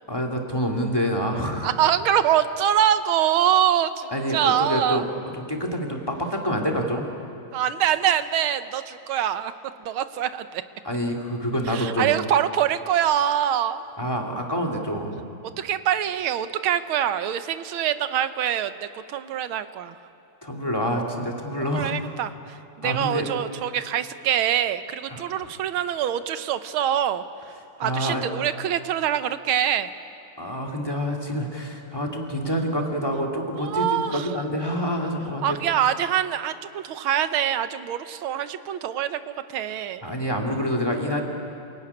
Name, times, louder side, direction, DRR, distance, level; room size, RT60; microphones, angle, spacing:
voice 1, 0.1-1.7 4.1-5.1 5.5-7.1 10.8-12.1 14.0-15.2 20.4-21.9 22.8-23.3 25.1-25.5 27.8-28.2 30.4-35.6 40.0-41.2, equal, 10° left, 2 dB, 2.4 m, -27 dB
voice 2, 1.6-5.1 7.5-9.5 9.9-10.6 11.7-13.8 15.6-20.0 21.6-22.3 22.8-27.2 27.8-29.9 33.6-34.3 35.4-39.2 39.5-40.1, right 10 dB, 75° right, 11 dB, 1.7 m, -24 dB
27.0 x 16.5 x 9.9 m, 2.6 s
omnidirectional pair, 2.4 m